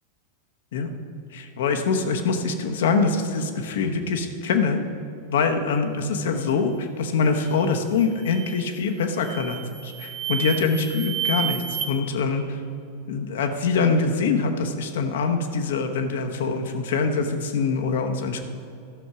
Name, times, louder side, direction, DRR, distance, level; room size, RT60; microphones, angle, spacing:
voice 1, 1.3-4.8 5.3-12.6 13.1-18.4, left 4 dB, 60° left, 6 dB, 1.0 m, -24 dB
sound 1, 7.4-7.7 8.2-8.7 9.2-11.9, right 9 dB, 35° right, 0.8 m, -31 dB
13.5 x 6.4 x 6.0 m, 2.6 s
figure-of-eight pair, 90°, 0 cm